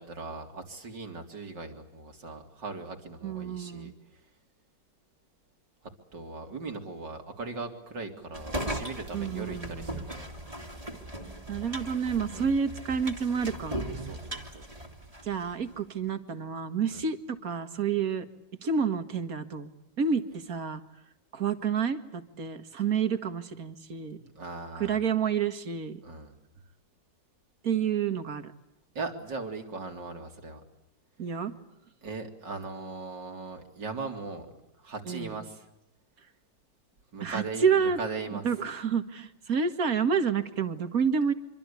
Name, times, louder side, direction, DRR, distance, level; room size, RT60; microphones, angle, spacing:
voice 1, 0.0-4.2 6.1-10.3 12.3-12.5 14.0-14.6 16.9-17.0 24.4-25.0 26.0-26.3 29.0-30.6 32.0-34.5 34.8-35.6 37.1-38.5, right 3 dB, 80° right, 5 dB, 4.1 m, -39 dB
voice 2, 3.2-3.9 9.1-10.0 11.5-13.9 15.2-18.3 18.6-19.7 20.0-20.8 21.3-24.2 24.8-26.0 27.6-28.5 31.2-31.5 35.1-35.4 37.2-38.0 38.3-41.3, right 6 dB, 55° right, 9 dB, 2.3 m, -29 dB
sound 1, 8.3-15.5, right 1 dB, 20° right, 2.7 m, -38 dB
26.5 x 24.5 x 8.5 m, 0.86 s
omnidirectional pair, 1.9 m